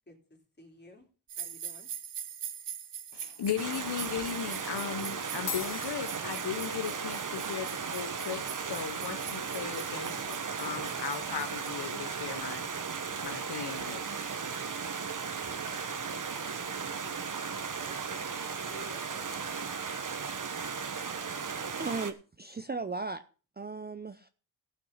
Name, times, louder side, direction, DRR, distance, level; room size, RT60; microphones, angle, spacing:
voice 1, 0.6-1.1 1.4-1.9 15.8-19.7, left 1 dB, 20° left, 3.0 m, -54 dB
sound 1, 1.3-12.3, right 9 dB, 65° right, 1.0 m, -44 dB
voice 2, 3.1-12.7 13.2-14.0, left 8 dB, 60° left, 0.9 m, -37 dB
Stream, 3.6-22.1, right 5 dB, 45° right, 1.2 m, -36 dB
sound 2, 3.8-4.1 5.0-5.1 5.3-14.0, left 6 dB, 90° left, 2.9 m, -48 dB
voice 3, 21.8-23.2 23.6-24.3, right 4 dB, 20° right, 0.6 m, -36 dB
15.5 x 6.0 x 5.7 m
wide cardioid pair, 95°, 45 cm